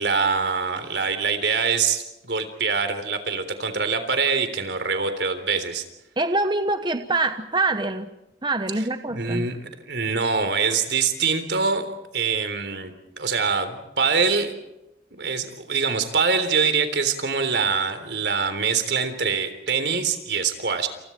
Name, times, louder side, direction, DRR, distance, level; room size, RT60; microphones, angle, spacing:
voice 1, 0.0-5.8 9.1-11.9 12.1-14.5 15.1-20.9, right 5 dB, 75° right, 9 dB, 3.6 m, -24 dB
voice 2, 6.2-8.1 8.4-9.5, right 2 dB, 25° right, 8 dB, 1.0 m, -24 dB
29.5 x 29.0 x 4.6 m, 0.93 s
head